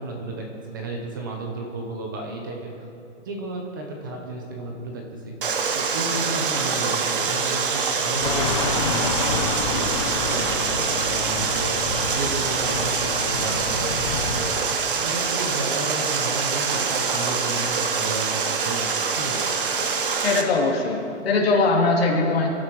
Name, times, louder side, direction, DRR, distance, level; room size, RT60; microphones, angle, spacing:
voice 1, 0.0-2.7 3.2-5.3 5.7-9.9 10.2-11.7 12.1-14.6 15.0-19.5, right 2 dB, 15° right, 1 dB, 0.8 m, -32 dB
Water, 5.4-20.4, right 5 dB, 45° right, 1.2 m, -25 dB
sound 1, 8.2-14.5, left 5 dB, 25° left, 0.8 m, -29 dB
voice 2, 20.2-22.5, left 3 dB, 50° left, -2 dB, 3.2 m, -21 dB
23.0 x 11.5 x 4.7 m, 2.6 s
hypercardioid pair, 175°, 38 cm